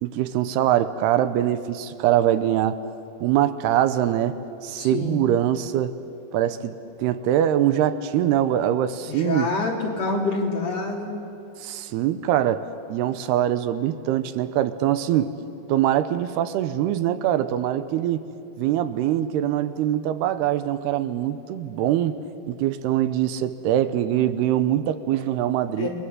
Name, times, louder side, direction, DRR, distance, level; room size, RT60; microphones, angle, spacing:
voice 1, 0.0-2.8 3.2-5.9 6.3-9.5 11.6-12.6 12.9-15.3 15.7-18.2 18.6-22.2 22.5-25.9, right 11 dB, 90° right, 12 dB, 2.9 m, -23 dB
voice 2, 4.8-5.2 9.1-11.1 25.8-25.9, left 3 dB, 40° left, -1 dB, 4.2 m, -26 dB
29.5 x 22.0 x 8.1 m, 2.9 s
omnidirectional pair, 4.6 m